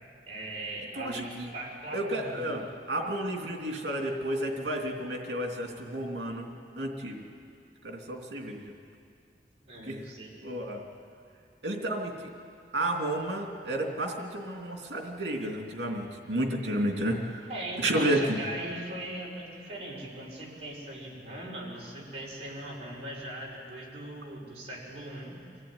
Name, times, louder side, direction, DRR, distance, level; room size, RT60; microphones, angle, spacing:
voice 1, 0.3-2.5 9.6-10.3 17.5-25.4, right 1 dB, 35° right, -4 dB, 5.2 m, -39 dB
voice 2, 1.0-1.5 1.9-2.6 2.9-6.5 6.8-7.3 7.8-8.6 9.9-10.0 10.4-10.8 11.6-12.3 12.7-17.4 17.8-18.4, right 1 dB, 70° right, 1 dB, 3.1 m, -31 dB
24.5 x 14.5 x 9.8 m, 2.3 s
head